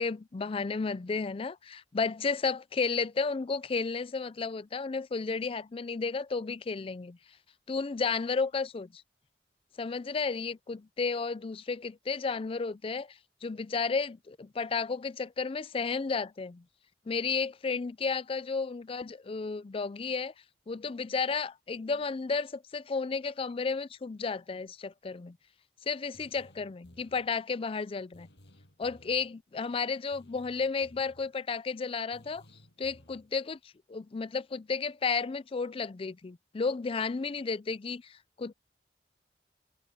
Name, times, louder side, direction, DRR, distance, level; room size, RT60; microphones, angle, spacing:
voice 1, 0.0-7.2 7.7-9.0 9.8-16.6 17.1-20.3 20.7-25.4 25.9-28.3 28.8-32.4 32.8-38.5, left 4 dB, 30° left, 0.4 m, -33 dB
sound 1, 26.1-27.3 28.1-29.3 30.1-31.3 32.1-33.3, equal, 75° left, 7.8 m, -58 dB
head